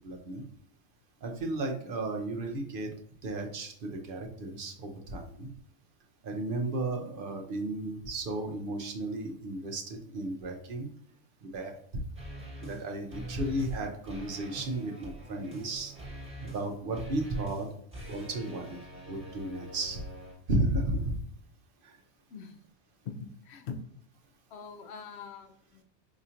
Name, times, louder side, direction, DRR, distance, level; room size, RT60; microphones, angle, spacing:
voice 1, 0.0-0.4 1.2-2.9 3.2-5.5 6.2-10.9 11.4-11.7 12.6-15.9 16.4-17.7 18.1-18.8 19.1-20.0 20.5-21.1 21.8-21.9, right 1 dB, 55° right, 3 dB, 0.8 m, -34 dB
sound 1, 12.2-12.8 13.1-13.8 14.0-20.3, right 1 dB, 10° right, 1.4 m, -43 dB
voice 2, 23.0-23.8 24.5-25.8, left 5 dB, 70° left, 7 dB, 0.8 m, -43 dB
4.9 x 2.8 x 2.5 m, 0.64 s
omnidirectional pair, 1.2 m